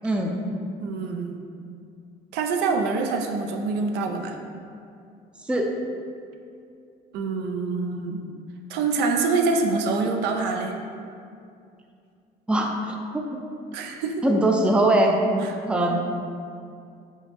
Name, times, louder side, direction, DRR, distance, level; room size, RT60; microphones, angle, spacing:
voice 1, 0.0-0.4 5.5-5.7 12.5-12.7 13.1-13.2 14.2-15.2 15.7-16.0, right 1 dB, 5° right, 1 dB, 0.4 m, -21 dB
voice 2, 0.8-1.4 2.3-4.4 7.1-8.2 8.7-10.8 13.7-14.2 15.4-15.6 15.9-16.0, right 4 dB, 85° right, 3 dB, 0.4 m, -25 dB
5.3 x 2.1 x 3.2 m, 2.4 s
cardioid pair, 110°, 17 cm